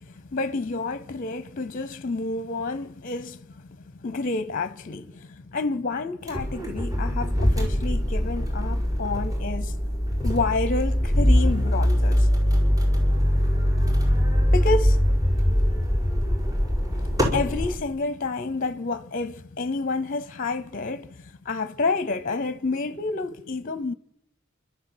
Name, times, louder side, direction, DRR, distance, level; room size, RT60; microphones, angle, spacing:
voice 1, 0.0-9.7 10.2-12.3 14.5-15.0 17.3-23.9, left 3 dB, 40° left, 0.8 m, -29 dB
sound 1, 6.3-17.8, equal, 20° right, 5.1 m, -22 dB
29.5 x 12.5 x 7.9 m
head